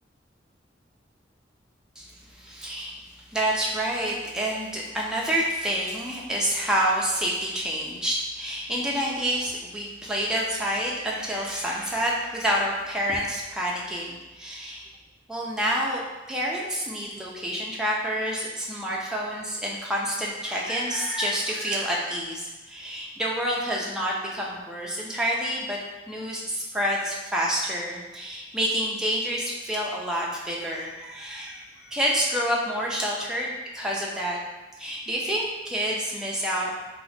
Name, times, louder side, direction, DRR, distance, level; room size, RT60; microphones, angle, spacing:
voice 1, 2.0-3.0 3.3-14.9 15.3-16.0 16.3-25.8 26.1-33.5 33.7-34.4 34.8-36.7, equal, 5° right, -4 dB, 0.4 m, -28 dB
2.8 x 2.1 x 4.1 m, 1.1 s
head